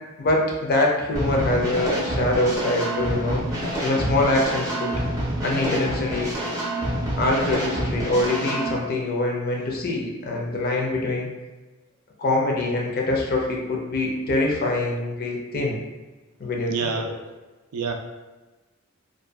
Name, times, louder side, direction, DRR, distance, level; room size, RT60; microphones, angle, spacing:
voice 1, 0.2-3.4 3.8-4.9 5.4-6.3 7.1-11.3 12.2-15.8 16.4-17.1, left 2 dB, 45° left, -1 dB, 0.4 m, -24 dB
sound 1, 1.1-8.7, right 1 dB, 15° right, 0.5 m, -27 dB
voice 2, 16.7-17.1 17.7-17.9, right 5 dB, 90° right, 4 dB, 0.4 m, -26 dB
2.6 x 2.2 x 2.2 m, 1.2 s
head